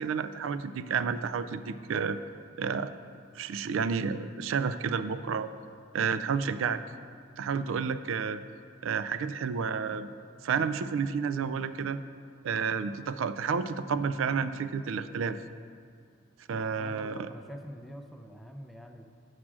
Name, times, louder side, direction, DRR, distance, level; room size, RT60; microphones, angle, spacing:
voice 1, 0.0-2.2 2.6-2.9 3.3-5.5 5.9-6.8 7.4-8.4 8.8-10.1 10.4-12.0 12.4-15.4 16.5-17.3, right 6 dB, 70° right, 13 dB, 0.3 m, -30 dB
voice 2, 16.6-19.1, equal, ahead, 3 dB, 0.4 m, -45 dB
7.4 x 4.9 x 6.0 m, 2.2 s
head